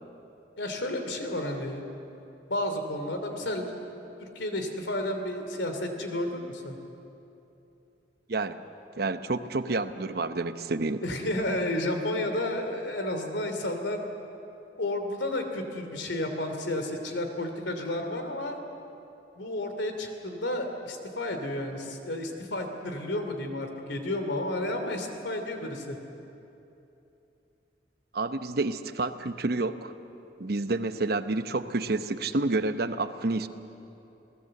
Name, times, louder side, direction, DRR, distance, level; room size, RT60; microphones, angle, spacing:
voice 1, 0.6-1.8 2.5-3.7 4.2-6.8 11.0-14.0 14.8-18.6 19.4-26.0, left 1 dB, 90° left, 5 dB, 3.0 m, -31 dB
voice 2, 9.0-11.0 28.1-29.9 30.4-33.5, right 3 dB, 60° right, 10 dB, 0.9 m, -29 dB
28.5 x 18.0 x 7.8 m, 2.9 s
head